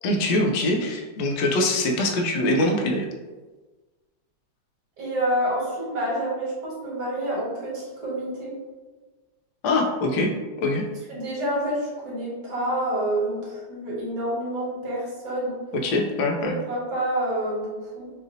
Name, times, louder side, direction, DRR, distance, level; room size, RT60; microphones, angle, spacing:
voice 1, 0.0-3.1 9.6-10.3 10.6-10.8 15.7-16.5, left 2 dB, 85° left, 1 dB, 0.9 m, -23 dB
voice 2, 5.0-8.6 11.1-15.6 16.4-18.1, right 1 dB, 55° right, -6 dB, 1.6 m, -28 dB
4.6 x 2.6 x 2.6 m, 1.3 s
omnidirectional pair, 2.4 m